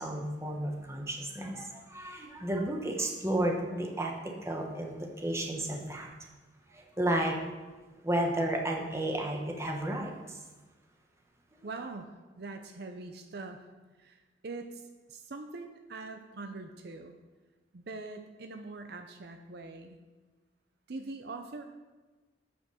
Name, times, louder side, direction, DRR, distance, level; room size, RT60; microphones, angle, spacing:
voice 1, 0.0-6.1 6.7-7.4 8.0-10.1, right 1 dB, 15° right, 1 dB, 1.1 m, -32 dB
voice 2, 11.6-13.7 14.0-17.1 17.7-20.0 20.9-21.6, right 3 dB, 60° right, 6 dB, 0.6 m, -43 dB
8.9 x 5.2 x 6.2 m, 1.3 s
head